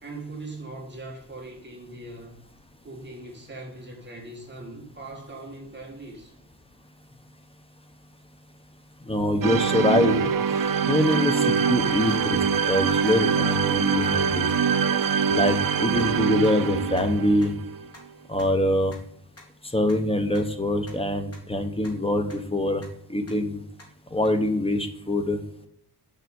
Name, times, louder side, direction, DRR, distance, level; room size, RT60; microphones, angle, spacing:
voice 1, 0.0-2.4 2.8-6.3, right 2 dB, 25° right, 1.9 m, -40 dB
voice 2, 9.1-10.3 10.9-14.5 15.3-17.5 18.3-18.9 19.7-22.8 23.1-23.6 24.1-25.4, left 1 dB, 15° left, 0.9 m, -24 dB
sound 1, 9.4-17.9, right 6 dB, 55° right, 0.5 m, -24 dB
sound 2, 11.1-11.2 11.6-11.7 12.1-12.2 12.5-12.6 13.1-13.2 13.5-13.6 14.0-14.1 14.5-14.6 15.0-15.1 15.5-15.6 16.0-16.1 16.4-16.5 17.0-17.1 17.4-17.5 17.9-18.0 18.4-18.5 18.9-19.0 19.4-19.5 19.9-20.0 20.3-20.4 20.9-21.0 21.3-21.4 21.8-21.9 22.3-22.4 22.8-22.9 23.3-23.4 23.8-23.9 24.2-24.3, left 2 dB, 35° left, 2.4 m, -46 dB
7.0 x 4.8 x 6.3 m
wide cardioid pair, 160°, 41 cm